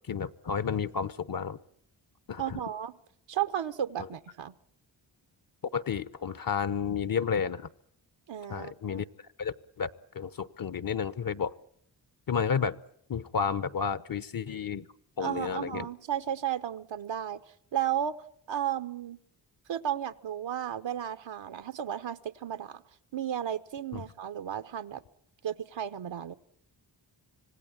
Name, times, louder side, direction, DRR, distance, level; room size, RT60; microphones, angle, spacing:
voice 1, 0.1-1.6 2.3-2.6 5.7-7.7 8.5-9.0 9.4-11.5 12.3-12.8 13.1-14.9 15.2-15.9 23.9-24.0, left 6 dB, 50° left, 15 dB, 1.0 m, -31 dB
voice 2, 2.4-3.0 3.3-4.5 8.3-9.0 15.2-17.4 17.7-18.1 18.5-19.2 19.7-22.8 23.1-25.0 25.4-26.3, right 10 dB, 70° right, 11 dB, 1.1 m, -33 dB
26.0 x 18.0 x 8.8 m, 0.69 s
cardioid pair, 50°, 46 cm